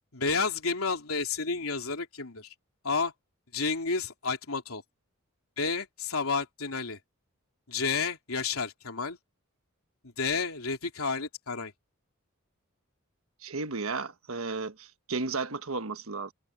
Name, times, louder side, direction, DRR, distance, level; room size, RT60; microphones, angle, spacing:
voice 1, 0.1-2.5 2.8-3.1 3.5-4.8 5.6-7.0 7.7-9.2 10.2-11.7, left 4 dB, 90° left, 3.2 m, -31 dB
voice 2, 13.4-16.3, right 4 dB, 75° right, 1.3 m, -34 dB
head